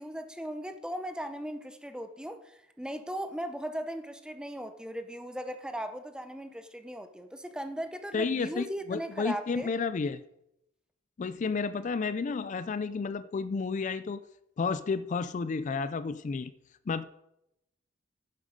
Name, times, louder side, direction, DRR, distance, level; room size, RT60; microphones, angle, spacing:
voice 1, 0.0-9.7, equal, 5° right, 8 dB, 0.7 m, -38 dB
voice 2, 8.1-10.2 11.2-14.2 14.6-16.5 16.9-17.0, left 4 dB, 40° left, 13 dB, 0.4 m, -31 dB
10.5 x 7.5 x 5.1 m, 0.84 s
head